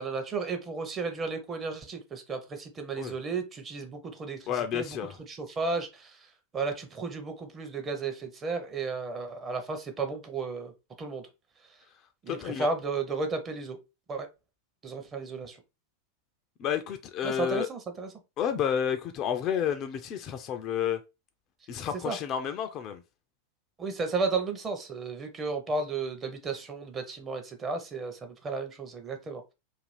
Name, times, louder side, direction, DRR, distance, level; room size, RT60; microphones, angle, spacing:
voice 1, 0.0-4.4 4.7-4.9 5.3-6.1 6.5-10.7 11.0-11.2 12.2-13.8 14.1-14.3 14.8-15.6 17.2-18.1 22.0-22.2 23.8-29.4, right 4 dB, 20° right, 0.6 m, -33 dB
voice 2, 4.5-5.2 12.3-12.7 16.6-17.7 18.4-21.0 21.7-23.0, left 9 dB, 35° left, 0.3 m, -30 dB
2.5 x 2.4 x 3.1 m
figure-of-eight pair, 90°, 0 cm